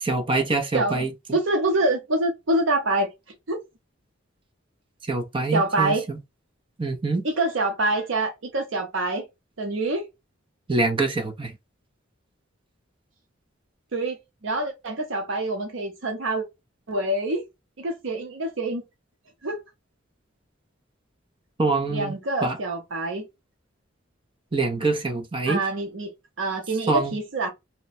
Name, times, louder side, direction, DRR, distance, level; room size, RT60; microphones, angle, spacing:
voice 1, 0.0-1.1 5.1-6.2 6.8-7.2 10.7-11.5 21.6-22.1 22.4-22.6 24.5-25.6 26.9-27.1, right 3 dB, 25° right, 0.6 m, -24 dB
voice 2, 0.7-3.1 3.5-3.6 5.5-6.1 7.2-9.3 9.6-10.0 13.9-14.2 14.4-16.4 16.9-17.4 17.8-18.8 19.4-19.6 21.9-23.2 25.5-26.1 26.4-27.5, right 2 dB, 70° right, 0.7 m, -26 dB
2.8 x 2.1 x 4.0 m
head